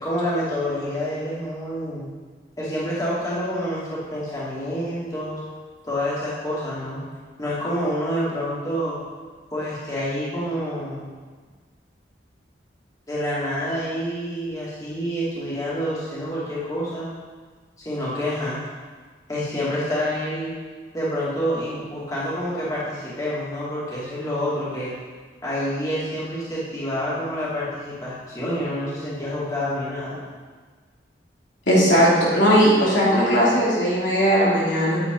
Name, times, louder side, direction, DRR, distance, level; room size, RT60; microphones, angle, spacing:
voice 1, 0.0-2.1 2.6-5.4 5.8-7.0 7.4-9.0 9.5-11.1 13.1-17.1 17.8-18.6 19.3-20.5 20.9-24.9 25.4-30.2, equal, 20° left, -8 dB, 2.5 m, -27 dB
voice 2, 31.7-35.0, equal, 90° left, -6 dB, 2.9 m, -18 dB
8.9 x 8.6 x 3.9 m, 1.5 s
head